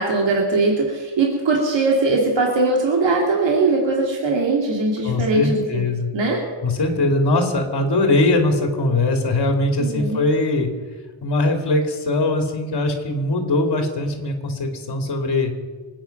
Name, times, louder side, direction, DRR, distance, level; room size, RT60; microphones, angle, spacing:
voice 1, 0.0-5.8 6.1-6.4 9.8-10.2, right 3 dB, 70° right, 0 dB, 2.5 m, -20 dB
voice 2, 5.0-6.1 6.6-10.7 11.2-15.5, left 2 dB, 55° left, 3 dB, 2.7 m, -21 dB
25.0 x 9.2 x 5.9 m, 1.4 s
wide cardioid pair, 140°, 46 cm